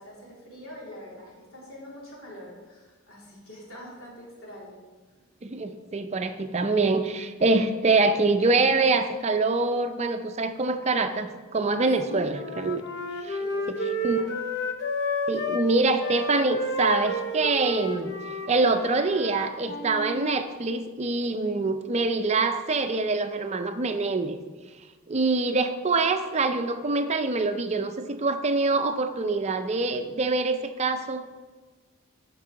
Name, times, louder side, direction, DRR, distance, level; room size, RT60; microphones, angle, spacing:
voice 1, 0.0-4.8 5.1-5.2 12.1-12.2 12.5-12.6 13.4-14.3, equal, 75° left, -5 dB, 3.5 m, -45 dB
voice 2, 5.4-12.8 13.2-13.4 14.0-14.2 15.3-18.1 18.5-24.4 25.1-31.3, right 3 dB, 30° right, 8 dB, 0.5 m, -25 dB
Wind instrument woodwind instrument, 11.8-15.7 16.0-20.3, left 1 dB, 55° left, 0.8 m, -31 dB
12.5 x 5.4 x 4.9 m, 1.4 s
head